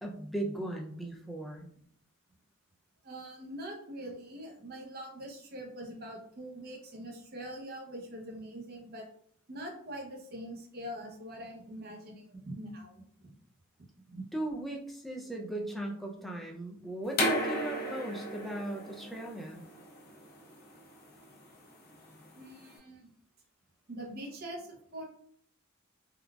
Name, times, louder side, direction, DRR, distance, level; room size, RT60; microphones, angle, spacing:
voice 1, 0.0-1.7 14.3-19.6, right 1 dB, ahead, 0 dB, 0.3 m, -38 dB
voice 2, 3.0-9.0 9.5-13.0 14.1-14.2 22.4-23.1 23.9-25.0, right 1 dB, 45° right, 1 dB, 0.7 m, -43 dB
sound 1, 17.1-22.7, equal, 45° left, 0.7 m, -35 dB
3.7 x 2.2 x 2.3 m, 0.65 s
head